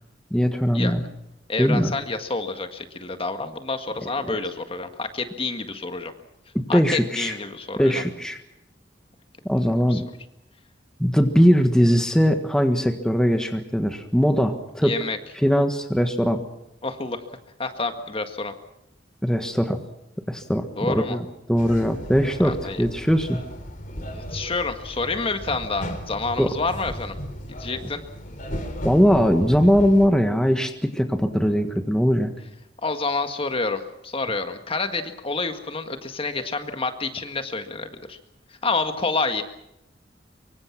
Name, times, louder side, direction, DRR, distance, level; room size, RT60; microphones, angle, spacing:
voice 1, 0.3-1.0 1.6-1.9 4.2-4.4 6.5-7.3 7.8-8.4 9.5-10.0 11.0-14.9 15.4-16.4 19.2-19.8 20.3-23.4 26.4-26.5 28.8-32.3, equal, 5° left, 6 dB, 1.5 m, -20 dB
voice 2, 1.5-6.1 6.7-8.0 9.9-10.0 14.8-15.2 16.8-17.2 17.6-18.5 20.8-21.2 22.4-22.8 24.1-27.2 27.6-28.0 32.8-38.2 38.6-39.4, left 3 dB, 30° left, 7 dB, 1.8 m, -28 dB
sound 1, 21.6-30.1, equal, 45° left, 3.7 m, -35 dB
24.5 x 24.0 x 6.0 m, 0.86 s
head